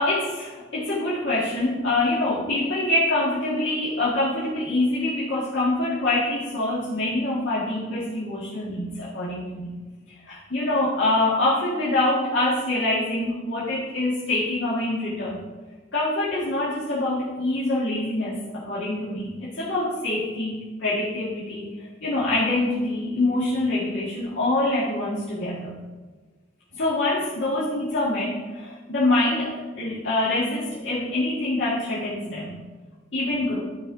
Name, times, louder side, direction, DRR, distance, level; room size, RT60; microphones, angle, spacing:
voice 1, 0.0-9.7 10.3-15.4 15.9-25.8 26.7-32.6 33.1-33.6, left 2 dB, 75° left, -8 dB, 1.8 m, -25 dB
12.5 x 4.4 x 4.9 m, 1.3 s
head